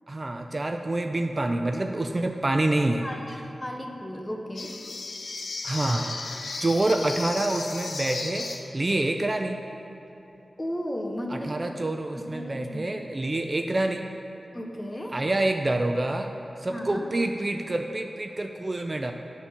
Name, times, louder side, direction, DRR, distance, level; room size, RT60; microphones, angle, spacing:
voice 1, 0.1-3.1 5.6-6.2 6.6-9.6 11.3-14.1 15.1-16.3 16.6-19.1, right 2 dB, 35° right, 5 dB, 0.3 m, -27 dB
voice 2, 3.0-4.7 10.6-11.5 12.1-12.9 14.5-15.1 16.7-17.1, equal, 15° left, 2 dB, 0.8 m, -35 dB
sound 1, 4.5-8.9, left 3 dB, 90° left, 0.6 m, -35 dB
10.0 x 4.2 x 5.7 m, 3.0 s
wide cardioid pair, 115°, 0 cm